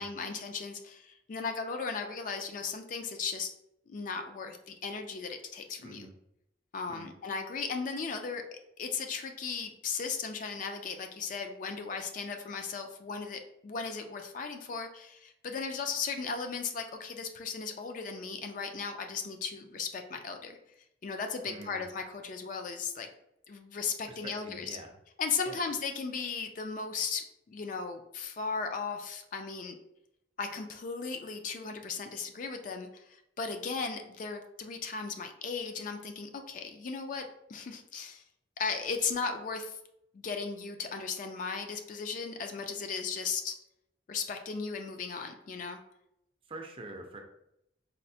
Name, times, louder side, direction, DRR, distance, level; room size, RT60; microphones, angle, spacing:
voice 1, 0.0-3.5 3.9-6.1 6.7-20.6 21.0-23.1 23.5-24.8 25.2-29.8 30.4-38.2 38.6-39.8 40.1-43.6 44.1-45.8, left 5 dB, 45° left, 5 dB, 0.3 m, -36 dB
voice 2, 5.8-6.1 6.9-7.1 21.4-21.9 24.1-24.9 25.5-25.6 46.5-47.2, right 2 dB, 30° right, 3 dB, 0.4 m, -45 dB
4.1 x 2.0 x 2.6 m, 0.78 s
head